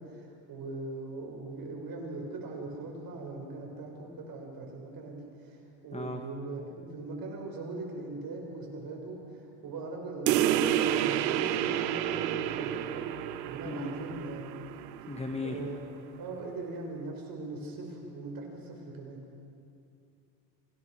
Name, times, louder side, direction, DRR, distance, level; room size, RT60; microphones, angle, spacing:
voice 1, 0.0-6.6 6.9-13.0 13.5-14.5 15.4-15.9 16.2-19.2, right 3 dB, 45° right, 1 dB, 6.6 m, -40 dB
sound 1, 10.3-15.3, right 11 dB, 85° right, 1.1 m, -30 dB
voice 2, 13.6-14.0 15.1-15.6, left 3 dB, 15° left, 3 dB, 2.0 m, -36 dB
27.0 x 17.5 x 6.6 m, 2.5 s
supercardioid pair, 95°, 48 cm